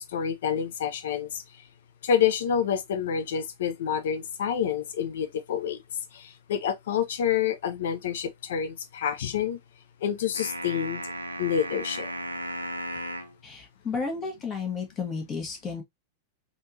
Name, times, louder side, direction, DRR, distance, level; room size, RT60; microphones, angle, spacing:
voice 1, 0.0-1.4 2.0-5.8 6.1-9.6 10.0-11.0 11.4-12.1, left 8 dB, 60° left, 0.5 m, -28 dB
sound 1, 10.3-13.4, right 1 dB, 85° right, 0.5 m, -35 dB
voice 2, 13.4-15.8, left 5 dB, 25° left, 1.3 m, -32 dB
3.4 x 2.5 x 2.7 m
figure-of-eight pair, 90°, 0 cm